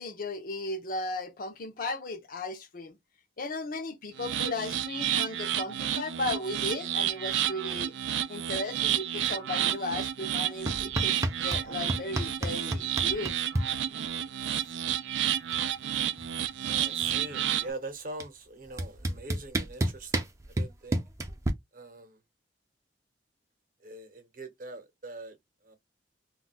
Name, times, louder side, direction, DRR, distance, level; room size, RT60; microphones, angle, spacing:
voice 1, 0.0-3.0 3.4-7.9 8.3-13.3, left 2 dB, 50° left, 0.5 m, -36 dB
sound 1, 4.2-17.7, right 10 dB, 90° right, 0.3 m, -31 dB
sound 2, 10.7-11.6 11.9-13.7 14.9-15.0 15.3-15.7 16.0-17.3 18.2-18.3 18.8-21.5, right 1 dB, 15° right, 0.4 m, -30 dB
voice 2, 16.6-21.0 21.7-22.2 23.8-25.4 25.6-25.8, right 2 dB, 50° right, 0.8 m, -43 dB
2.3 x 2.1 x 3.8 m
head